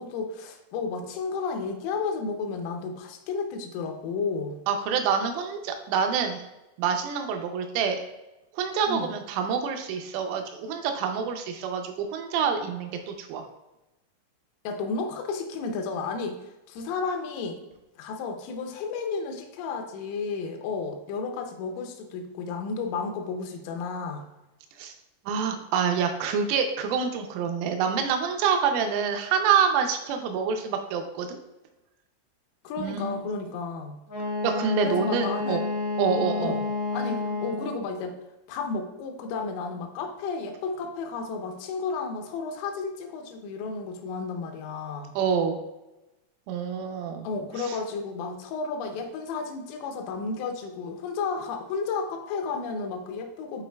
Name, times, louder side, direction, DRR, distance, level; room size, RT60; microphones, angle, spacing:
voice 1, 0.0-4.6 8.9-9.1 14.6-16.4 16.7-17.6 18.0-24.2 32.6-34.0 34.8-35.6 36.4-36.6 36.9-38.2 38.5-45.2 47.2-53.6, left 4 dB, 85° left, 4 dB, 3.2 m, -32 dB
voice 2, 4.7-6.4 6.8-8.0 8.5-13.5 24.8-24.9 25.3-31.4 32.8-33.2 34.4-35.6 36.0-36.6 45.2-45.6 46.5-47.3 47.6-47.8, right 6 dB, 80° right, 5 dB, 3.1 m, -27 dB
Wind instrument woodwind instrument, 34.1-37.8, left 2 dB, 65° left, 1.3 m, -30 dB
11.0 x 4.1 x 2.3 m, 0.99 s
omnidirectional pair, 5.8 m